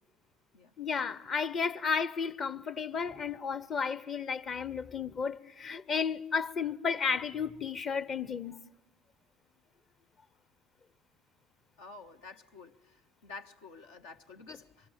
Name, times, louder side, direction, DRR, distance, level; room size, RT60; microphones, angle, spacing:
voice 1, 0.8-8.5, left 6 dB, 45° left, 1.2 m, -33 dB
voice 2, 11.8-14.9, left 4 dB, 75° left, 1.4 m, -50 dB
25.5 x 24.0 x 9.1 m
hypercardioid pair, 60°, 0 cm